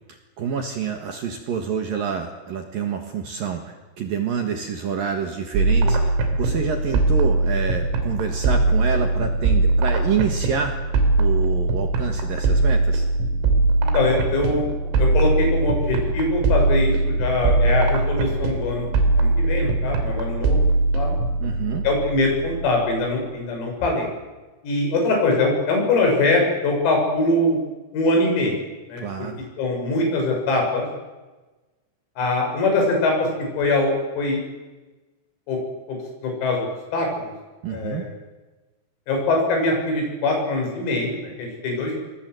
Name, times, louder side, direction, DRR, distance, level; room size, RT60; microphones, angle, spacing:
voice 1, 0.1-10.8 11.2-13.1 21.4-21.8 29.0-29.4 37.6-38.1, right 7 dB, 60° right, 4 dB, 2.6 m, -28 dB
sound 1, 5.5-23.2, right 2 dB, 90° right, 5.7 m, -21 dB
voice 2, 13.9-14.7 15.0-18.9 19.1-20.6 20.9-21.2 21.8-24.1 24.6-27.6 27.9-28.6 28.9-29.0 29.6-30.9 32.2-33.3 33.6-34.4 35.5-35.6 35.9-36.0 36.2-36.7 36.9-37.3 37.7-38.1 39.1-42.0, left 2 dB, 85° left, 1 dB, 9.4 m, -22 dB
26.5 x 23.0 x 7.9 m, 1.2 s
omnidirectional pair, 6.0 m